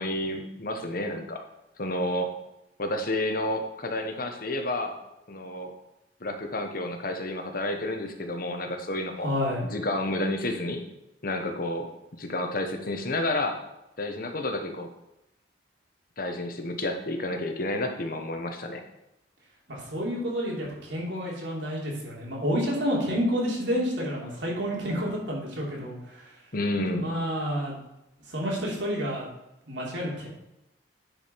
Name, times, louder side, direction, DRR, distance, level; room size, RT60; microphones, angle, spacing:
voice 1, 0.0-1.4 1.8-2.3 2.8-5.0 5.3-5.7 6.2-9.3 9.6-10.8 11.2-13.6 14.0-14.9 16.2-18.8 26.5-27.1, left 1 dB, 50° left, 5 dB, 1.2 m, -30 dB
voice 2, 9.2-9.6 19.7-26.3 26.9-27.8 28.3-29.2 29.7-30.3, equal, 80° right, -4 dB, 3.2 m, -29 dB
10.0 x 5.1 x 5.2 m, 0.90 s
head